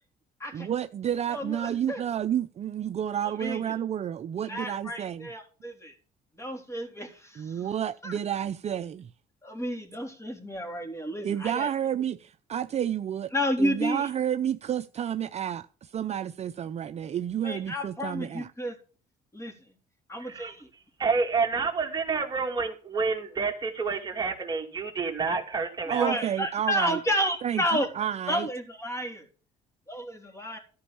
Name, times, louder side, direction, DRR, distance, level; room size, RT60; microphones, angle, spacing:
voice 1, 0.5-5.3 7.4-9.1 11.2-13.3 13.6-18.5 25.9-27.0 27.4-28.5, right 9 dB, 40° right, 0.5 m, -30 dB
voice 2, 1.3-2.0 3.2-3.7 4.5-5.9 6.3-7.7 8.0-8.1 9.4-11.7 13.3-14.1 17.4-18.7 19.3-19.5 20.1-20.7 26.0-27.9 28.3-29.2 29.9-30.6, equal, 15° left, 3.5 m, -31 dB
voice 3, 21.0-26.2, right 4 dB, 25° right, 2.5 m, -28 dB
13.5 x 5.3 x 6.9 m
cardioid pair, 110°, 17 cm